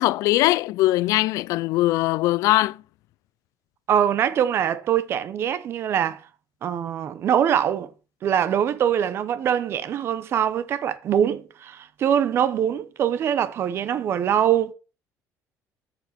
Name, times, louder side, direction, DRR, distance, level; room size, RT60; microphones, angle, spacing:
voice 1, 0.0-2.8, left 17 dB, 70° left, 0.3 m, -21 dB
voice 2, 3.9-6.2 6.6-7.9 8.2-14.7, right 9 dB, 45° right, 0.8 m, -23 dB
7.1 x 6.8 x 5.8 m
cardioid pair, 150°, 6 cm